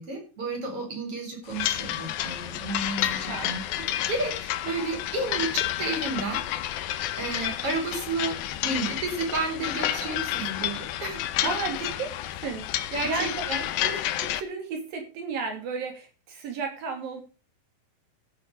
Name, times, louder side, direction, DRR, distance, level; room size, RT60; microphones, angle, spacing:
voice 1, 0.0-3.6 4.1-11.2 12.9-13.6, right 2 dB, 40° right, 2 dB, 5.0 m, -32 dB
sound 1, 1.5-14.4, left 13 dB, 85° left, 2.6 m, -30 dB
voice 2, 3.3-3.6 11.4-12.1 12.4-12.8 13.0-13.4 13.8-17.2, right 4 dB, 75° right, 3 dB, 4.6 m, -33 dB
14.5 x 6.9 x 5.2 m, 0.34 s
omnidirectional pair, 4.1 m